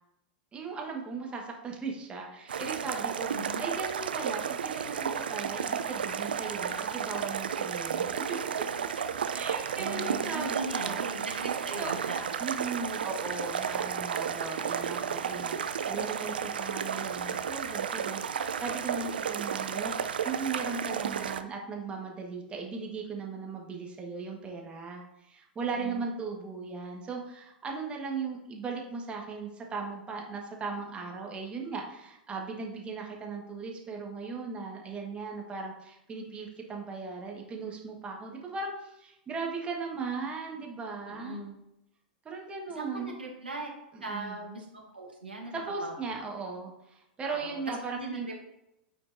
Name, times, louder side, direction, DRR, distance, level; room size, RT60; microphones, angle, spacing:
voice 1, 0.5-3.3 3.6-8.4 9.3-11.2 11.8-12.0 12.4-41.4 42.2-43.1 43.9-44.4 45.5-48.3, right 4 dB, 20° right, 0 dB, 1.4 m, -38 dB
sound 1, 2.5-21.4, right 7 dB, 70° right, 0.4 m, -33 dB
voice 2, 3.3-3.6 9.7-12.3 25.8-26.0 41.0-41.5 42.8-43.7 44.0-45.9 47.2-48.3, right 2 dB, 90° right, -1 dB, 1.7 m, -39 dB
9.2 x 4.3 x 2.6 m, 0.83 s
figure-of-eight pair, 100°, 5 cm